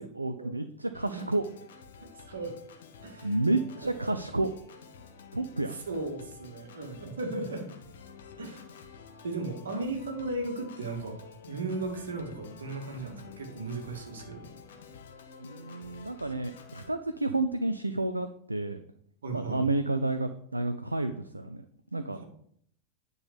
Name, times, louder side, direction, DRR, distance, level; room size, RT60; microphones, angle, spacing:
voice 1, 0.0-1.4 3.2-4.5 5.3-5.8 15.4-18.8 19.3-21.6 21.9-22.2, right 2 dB, 85° right, 9 dB, 0.5 m, -30 dB
Organ, 0.9-16.9, left 5 dB, 60° left, 1.2 m, -50 dB
voice 2, 2.0-2.6 3.0-3.4 4.0-4.2 5.7-7.7 8.4-8.6 9.2-11.2 11.5-14.5 19.2-19.6, right 2 dB, 65° right, 2 dB, 2.0 m, -36 dB
9.6 x 4.1 x 6.9 m, 0.66 s
figure-of-eight pair, 90°, 0 cm